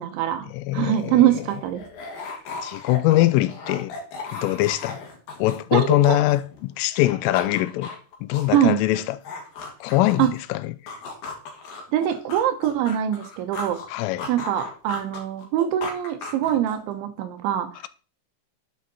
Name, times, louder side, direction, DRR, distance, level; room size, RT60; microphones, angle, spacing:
voice 1, 0.0-0.5 0.7-1.8 5.7-6.2 8.5-8.8 10.2-10.3 11.9-13.8 14.3-17.7, right 11 dB, 75° right, 3.2 m, -23 dB
voice 2, 0.5-1.4 2.6-3.9 4.3-5.0 5.4-7.9 8.2-9.2 9.8-10.9 13.9-14.3, left 16 dB, 85° left, 3.2 m, -22 dB
sound 1, 0.8-0.9 1.1-6.6 6.9-10.4 10.9-13.9 14.2-16.9, left 3 dB, 55° left, 3.0 m, -37 dB
11.0 x 7.7 x 4.1 m
omnidirectional pair, 5.8 m